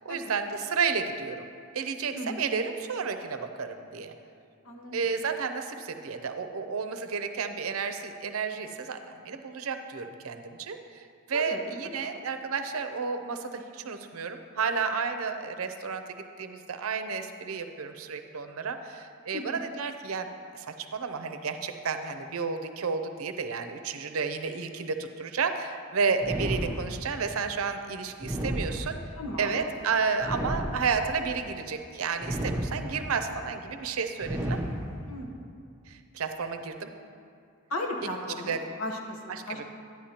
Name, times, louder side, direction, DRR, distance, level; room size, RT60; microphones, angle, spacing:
voice 1, 0.0-1.5 1.7-4.1 4.9-20.3 20.5-29.0 29.4-34.6 35.9-36.9 38.5-38.6 39.3-39.6, right 5 dB, 80° right, 7 dB, 0.6 m, -32 dB
voice 2, 2.1-2.4 4.6-4.9 11.3-11.7 12.0-12.1 19.3-19.4 29.2-29.6 35.1-35.3 37.7-39.6, left 1 dB, 80° left, 1 dB, 1.0 m, -36 dB
sound 1, 26.2-27.3 28.2-29.3 30.2-31.3 32.2-33.2 34.2-35.2, equal, 10° right, 0.7 m, -32 dB
10.5 x 10.0 x 2.9 m, 2.4 s
head